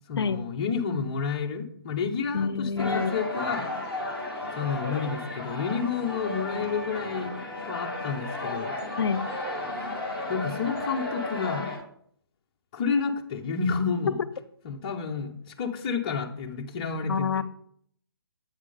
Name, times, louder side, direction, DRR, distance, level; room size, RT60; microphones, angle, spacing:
voice 1, 0.1-3.7 4.5-7.3 7.6-8.8 10.3-11.7 12.7-14.2 14.6-17.4, left 5 dB, 20° left, 1 dB, 0.5 m, -30 dB
voice 2, 2.3-3.2 9.0-9.2 17.1-17.4, left 6 dB, 80° left, 16 dB, 0.5 m, -27 dB
sound 1, 2.8-11.8, left 2 dB, 10° right, 1.0 m, -33 dB
7.6 x 3.6 x 4.9 m, 0.66 s
hypercardioid pair, 165°, 13 cm